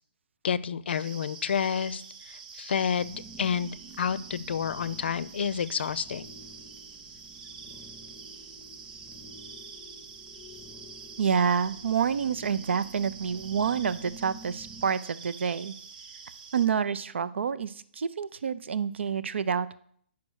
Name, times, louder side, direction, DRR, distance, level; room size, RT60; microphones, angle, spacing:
voice 1, 0.4-6.3, left 7 dB, 60° left, 18 dB, 0.5 m, -30 dB
sound 1, 0.9-16.7, right 5 dB, 45° right, 0.9 m, -46 dB
sound 2, 2.9-14.9, equal, 10° left, 0.7 m, -51 dB
voice 2, 11.2-15.7 16.5-19.8, right 7 dB, 70° right, 16 dB, 0.5 m, -28 dB
8.6 x 5.9 x 6.3 m, 0.63 s
hypercardioid pair, 155°, 6 cm